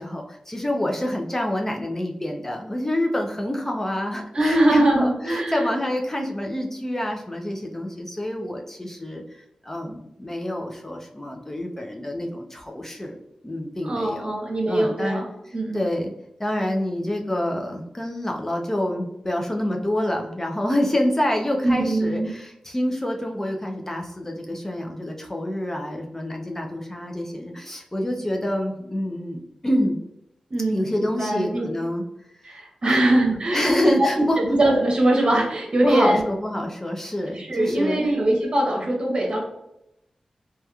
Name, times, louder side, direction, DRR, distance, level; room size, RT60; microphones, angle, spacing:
voice 1, 0.0-13.2 13.4-14.4 14.7-16.1 16.4-30.0 30.7-32.4 32.8-33.0 33.5-34.4 35.8-38.0, left 1 dB, 20° left, 2 dB, 0.3 m, -27 dB
voice 2, 4.3-5.7 13.8-15.3 15.5-15.8 21.6-22.3 30.5-31.7 32.4-33.7 34.0-34.1 34.4-36.2 37.4-39.4, right 1 dB, 50° right, 0 dB, 0.7 m, -22 dB
2.8 x 2.2 x 2.2 m, 0.86 s
wide cardioid pair, 65°, 2 cm